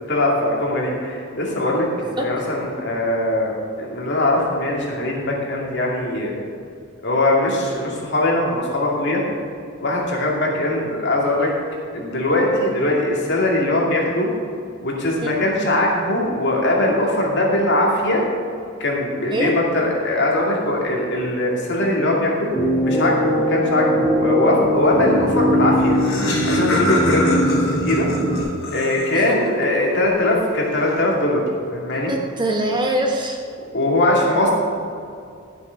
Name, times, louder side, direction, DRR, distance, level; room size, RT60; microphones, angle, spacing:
voice 1, 0.0-3.5 3.8-6.4 7.0-9.2 9.8-11.5 11.9-14.3 14.8-18.2 18.8-22.5 22.8-26.0 26.4-28.1 28.7-31.4 31.7-32.1 33.7-34.5, left 1 dB, 60° left, -2 dB, 2.4 m, -21 dB
sound 1, 22.5-28.4, equal, 5° left, 1.9 m, -20 dB
Laughter, 25.4-25.5 25.7-29.4, left 1 dB, 80° left, 3.2 m, -26 dB
voice 2, 32.1-33.4, right 1 dB, 25° right, 1 dB, 1.2 m, -23 dB
12.0 x 6.8 x 5.8 m, 2.3 s
head